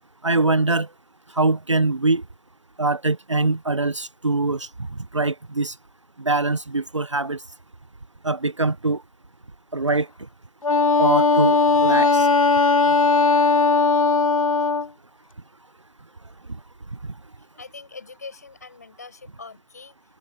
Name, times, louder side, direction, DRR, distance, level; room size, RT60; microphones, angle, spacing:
voice 1, 0.2-0.9 1.3-2.2 2.8-4.7 5.0-5.7 6.2-7.4 8.2-9.0 9.7-10.1 11.0-11.6 11.8-12.3 17.0-17.1, right 3 dB, 55° right, 0.8 m, -23 dB
Wind instrument woodwind instrument, 10.6-14.9, left 4 dB, 70° left, 0.6 m, -18 dB
voice 2, 17.4-20.2, left 4 dB, 30° left, 5.2 m, -43 dB
figure-of-eight pair, 170°, 19 cm